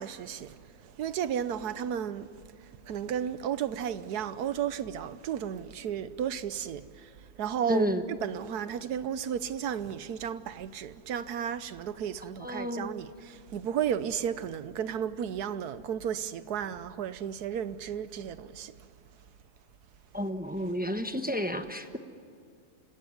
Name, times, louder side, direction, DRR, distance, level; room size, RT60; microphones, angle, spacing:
voice 1, 0.0-2.3 2.6-7.1 7.4-18.7, right 8 dB, 75° right, 1.4 m, -33 dB
voice 2, 7.7-8.0 12.4-12.9 20.1-22.0, left 1 dB, 5° right, 0.9 m, -31 dB
28.5 x 17.5 x 9.9 m
omnidirectional pair, 1.7 m